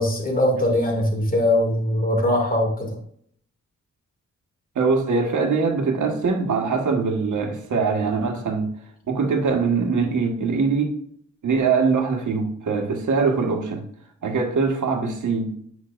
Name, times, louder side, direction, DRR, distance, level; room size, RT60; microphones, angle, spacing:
voice 1, 0.0-3.0, left 1 dB, 30° left, 0 dB, 2.4 m, -21 dB
voice 2, 4.7-8.7 9.1-10.9 11.4-13.8 14.2-15.5, right 4 dB, 85° right, 3 dB, 1.5 m, -22 dB
9.6 x 5.7 x 2.5 m, 0.64 s
wide cardioid pair, 105°, 29 cm